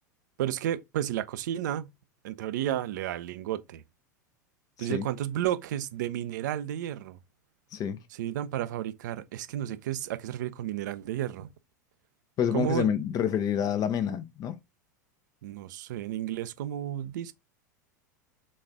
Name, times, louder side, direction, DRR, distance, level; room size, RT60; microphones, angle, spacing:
voice 1, 0.4-1.9 2.2-3.8 4.8-7.2 8.1-11.5 12.5-12.9 15.4-17.3, right 11 dB, 75° right, 0.6 m, -32 dB
voice 2, 12.4-14.6, left 8 dB, 40° left, 0.6 m, -28 dB
4.2 x 3.3 x 3.6 m
hypercardioid pair, 100°, 10 cm